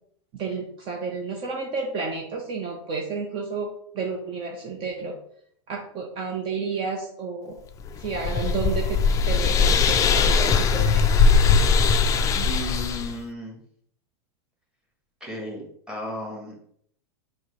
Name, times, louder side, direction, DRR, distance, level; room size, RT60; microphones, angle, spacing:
voice 1, 0.3-3.7 3.9-5.2 5.7-7.6 8.0-9.0 9.2-11.0, right 4 dB, 35° right, 0 dB, 0.8 m, -31 dB
sound 1, 7.8-13.1, left 5 dB, 25° left, 0.3 m, -20 dB
voice 2, 12.3-13.6 15.2-16.5, equal, 5° right, -2 dB, 1.5 m, -34 dB
4.4 x 2.2 x 4.6 m, 0.65 s
hypercardioid pair, 120°, 14 cm